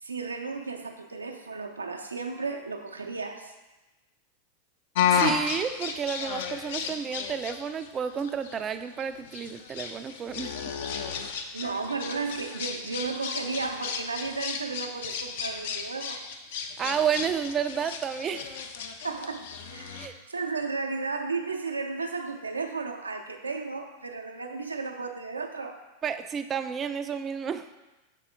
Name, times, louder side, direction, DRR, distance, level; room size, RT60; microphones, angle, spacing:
voice 1, 0.0-3.5 11.5-16.2 19.0-19.4 19.7-25.8, right 4 dB, 80° right, 4 dB, 0.6 m, -34 dB
sound 1, 4.9-20.1, left 6 dB, 55° left, 0.5 m, -33 dB
voice 2, 5.1-10.5 16.8-18.5 19.9-20.1 26.0-27.7, right 7 dB, 25° right, 10 dB, 0.4 m, -31 dB
6.8 x 4.1 x 3.8 m, 1.1 s
figure-of-eight pair, 90°, 0 cm